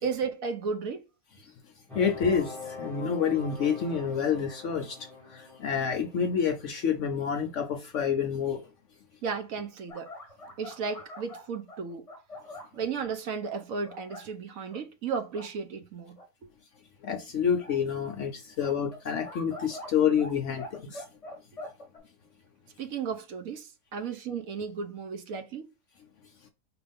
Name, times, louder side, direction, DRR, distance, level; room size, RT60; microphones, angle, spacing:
voice 1, 0.0-1.0 9.2-10.1 10.6-12.1 12.7-16.2 22.8-25.7, right 5 dB, 65° right, 1.1 m, -34 dB
voice 2, 1.9-5.0 5.3-8.7 17.0-21.0, left 7 dB, 65° left, 0.8 m, -28 dB
sound 1, 1.9-7.5, left 4 dB, ahead, 1.0 m, -44 dB
sound 2, 9.9-12.8 13.4-14.3 14.7-14.8 15.2-15.5 16.2-16.3 17.6-17.8 18.6-20.3 20.6-22.0, left 1 dB, 25° left, 0.9 m, -44 dB
5.1 x 3.0 x 3.4 m
omnidirectional pair, 1.7 m